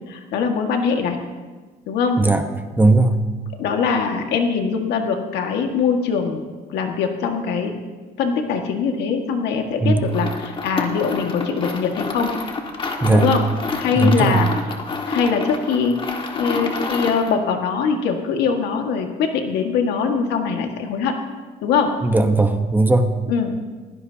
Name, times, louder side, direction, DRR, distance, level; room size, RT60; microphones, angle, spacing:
voice 1, 0.1-1.2 1.9-2.2 3.6-6.4 6.7-7.8 8.2-12.3 13.1-13.4 13.8-14.8 15.0-21.1 21.6-21.9 23.3-23.5, left 5 dB, 80° left, 3 dB, 1.8 m, -22 dB
voice 2, 2.8-3.3 9.8-10.0 13.0-13.3 14.0-14.4 22.0-23.1, right 2 dB, 10° right, 6 dB, 1.1 m, -17 dB
Sifting Through Bolts, 10.0-17.4, left 3 dB, 30° left, 1.7 m, -28 dB
19.5 x 16.5 x 2.9 m, 1.3 s
cardioid pair, 110°, 17 cm